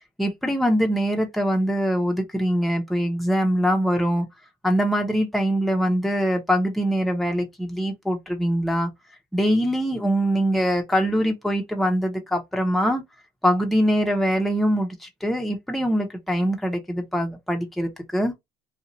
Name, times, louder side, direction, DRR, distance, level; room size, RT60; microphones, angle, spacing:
voice 1, 0.2-4.3 4.6-8.9 9.3-13.0 13.4-18.3, equal, ahead, 0.8 m, -23 dB
2.7 x 2.4 x 4.1 m
cardioid pair, 110°, 17 cm